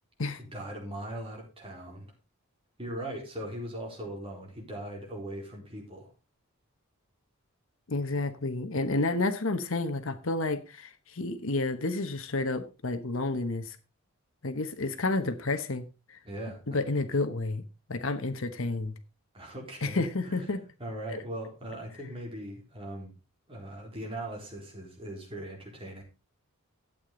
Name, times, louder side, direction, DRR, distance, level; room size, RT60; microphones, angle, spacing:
voice 1, 0.4-2.1 2.8-6.1 16.2-16.8 19.3-20.5 20.8-23.1 23.5-26.0, right 1 dB, 25° right, 4.2 m, -40 dB
voice 2, 7.9-13.8 14.4-16.2 16.7-17.6 17.9-18.9 19.8-20.6 21.1-21.2, left 2 dB, 65° left, 1.1 m, -30 dB
12.5 x 8.6 x 3.9 m
head